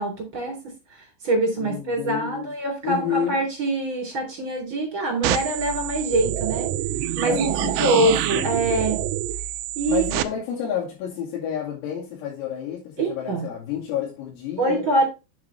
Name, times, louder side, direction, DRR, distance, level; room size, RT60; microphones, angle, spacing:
voice 1, 0.0-6.7 7.2-7.5 7.8-9.0 9.8-10.0 13.0-13.5 14.6-15.0, right 2 dB, 25° right, 3.7 m, -24 dB
voice 2, 1.6-2.5 2.8-3.4 7.3-8.5 9.9-14.9, left 9 dB, 90° left, 5.3 m, -30 dB
sound 1, 5.2-10.2, right 12 dB, 80° right, 2.9 m, -26 dB
8.6 x 7.4 x 3.4 m
omnidirectional pair, 5.9 m